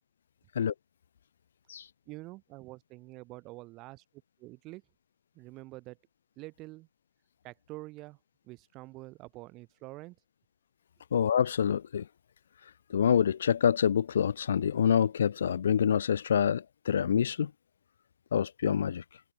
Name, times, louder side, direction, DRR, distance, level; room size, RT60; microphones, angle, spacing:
voice 1, 2.1-4.0 4.4-4.8 5.4-6.0 6.4-6.9 7.4-8.2 8.5-10.2, right 21 dB, 20° right, 5.8 m, -46 dB
voice 2, 11.1-12.0 12.6-17.5 18.3-19.2, left 8 dB, 45° left, 1.0 m, -27 dB
figure-of-eight pair, 150°, 0 cm